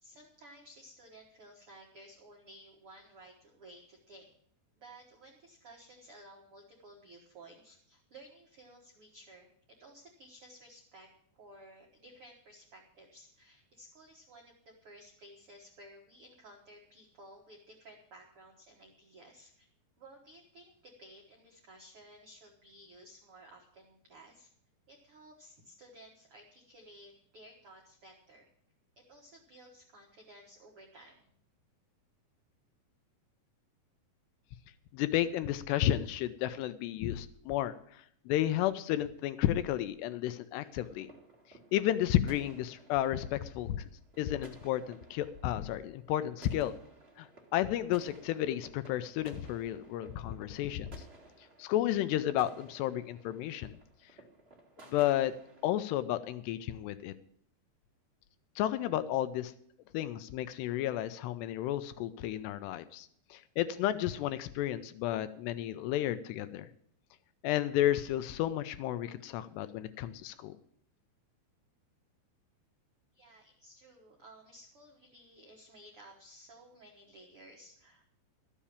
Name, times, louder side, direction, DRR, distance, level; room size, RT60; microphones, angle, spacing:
voice 1, 0.0-4.3 4.7-11.1 11.3-19.7 20.0-24.5 24.9-28.5 29.1-31.3 73.1-78.0, right 1 dB, 70° right, 0 dB, 1.3 m, -55 dB
voice 2, 34.9-41.1 41.7-43.9 44.2-46.7 47.2-47.3 47.5-51.0 51.6-53.7 54.9-55.3 55.6-57.1 58.6-59.5 59.9-66.7 67.4-70.5, left 13 dB, 80° left, 12 dB, 2.6 m, -32 dB
sound 1, 40.6-55.7, right 2 dB, 35° right, 1.0 m, -57 dB
13.0 x 7.3 x 8.4 m, 0.66 s
omnidirectional pair, 5.1 m